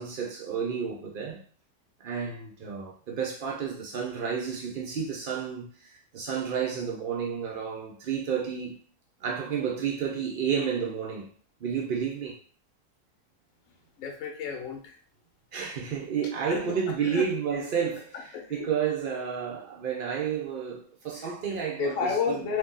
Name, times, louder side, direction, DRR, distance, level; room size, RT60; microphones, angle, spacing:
voice 1, 0.0-1.4 2.0-8.8 9.2-11.3 11.6-12.4 15.5-22.5, right 7 dB, 85° right, 0.4 m, -31 dB
voice 2, 14.0-15.0 16.5-16.8 17.0-17.3 18.3-18.5 21.2-22.6, left 6 dB, 65° left, 1.0 m, -31 dB
2.7 x 2.6 x 3.7 m
omnidirectional pair, 1.7 m